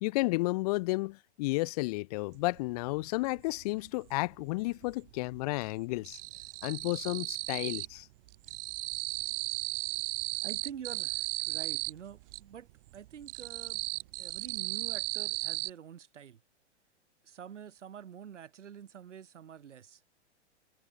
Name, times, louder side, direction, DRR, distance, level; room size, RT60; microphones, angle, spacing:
voice 1, 0.0-6.2 6.6-8.1, left 22 dB, 35° left, 0.4 m, -32 dB
sound 1, 2.5-2.6 2.9-4.1 4.4-5.1 5.3-8.0 8.3-12.4 12.9-15.7, right 20 dB, 50° right, 1.3 m, -36 dB
voice 2, 10.4-13.9 14.2-16.4 17.2-20.0, right 8 dB, 90° right, 1.8 m, -47 dB
hypercardioid pair, 125°, 35 cm